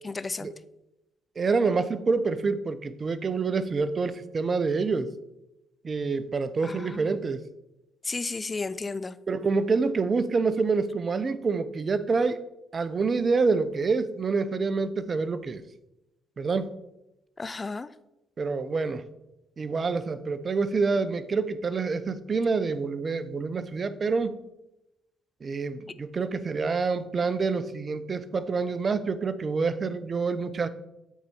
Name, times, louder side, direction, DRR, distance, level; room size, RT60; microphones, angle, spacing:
voice 1, 0.0-0.5 6.6-7.1 8.0-9.2 17.4-17.9, left 3 dB, 30° left, 15 dB, 0.4 m, -33 dB
voice 2, 1.4-5.1 5.8-7.4 9.3-12.4 12.7-15.6 16.4-16.7 18.4-19.0 19.6-24.4 25.4-30.7, right 4 dB, 45° right, 14 dB, 0.6 m, -27 dB
8.3 x 4.0 x 4.4 m, 0.92 s
hypercardioid pair, 55°, 0 cm